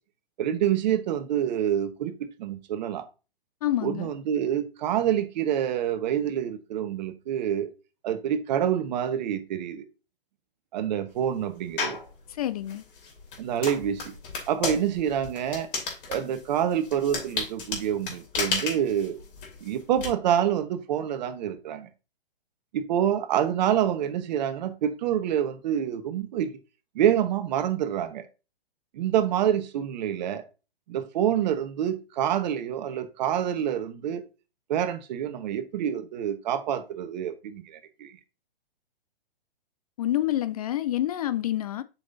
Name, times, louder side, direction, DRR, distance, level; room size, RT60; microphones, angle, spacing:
voice 1, 0.4-3.1 3.8-7.7 8.0-9.8 10.7-12.0 13.4-14.1 14.5-15.7 16.1-19.2 19.6-21.9 22.7-26.5 26.9-28.2 28.9-30.4 30.9-34.2 34.7-38.1, right 10 dB, 45° right, 1.1 m, -27 dB
voice 2, 3.6-4.1 12.3-12.8 40.0-41.8, left 13 dB, 40° left, 0.4 m, -27 dB
sound 1, 11.8-12.1 12.7-20.1, left 4 dB, 60° left, 3.0 m, -33 dB
7.8 x 5.7 x 2.7 m
hypercardioid pair, 130°, 30 cm